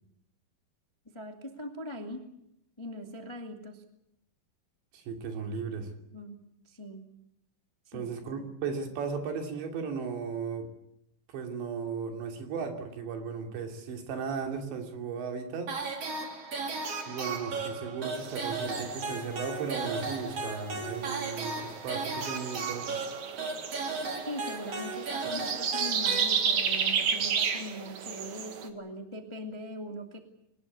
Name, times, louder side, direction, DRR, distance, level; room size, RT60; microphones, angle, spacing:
voice 1, 1.1-2.2 2.8-3.8 6.1-6.4 6.6-7.0 7.8-8.1 24.2-30.2, equal, 20° left, 4 dB, 0.7 m, -41 dB
voice 2, 4.9-5.9 7.9-10.7 11.3-15.7 17.1-22.9, right 5 dB, 80° right, 4 dB, 5.1 m, -36 dB
sound 1, 15.7-26.8, right 3 dB, 40° right, 3.6 m, -36 dB
sound 2, 18.2-28.7, right 6 dB, 55° right, 2.5 m, -33 dB
23.0 x 20.0 x 8.4 m, 0.81 s
omnidirectional pair, 5.0 m